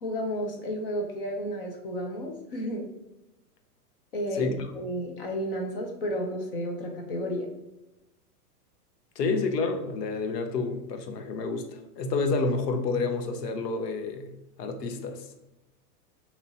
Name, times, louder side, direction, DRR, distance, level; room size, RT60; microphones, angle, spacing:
voice 1, 0.0-2.9 4.1-7.5, equal, 40° left, 2 dB, 0.5 m, -32 dB
voice 2, 4.3-4.7 9.2-14.3 14.6-15.3, left 3 dB, 85° left, 7 dB, 0.8 m, -29 dB
4.0 x 2.9 x 2.7 m, 0.93 s
supercardioid pair, 165°, 48 cm